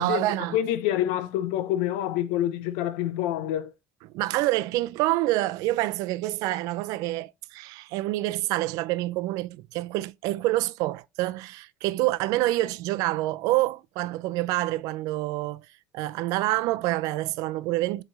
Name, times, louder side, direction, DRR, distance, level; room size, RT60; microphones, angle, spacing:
voice 1, 0.0-0.6 4.1-15.7 15.9-18.0, right 17 dB, 70° right, 0.7 m, -27 dB
voice 2, 0.5-3.7, left 12 dB, 80° left, 0.9 m, -27 dB
8.1 x 3.5 x 4.0 m
supercardioid pair, 85°, 6 cm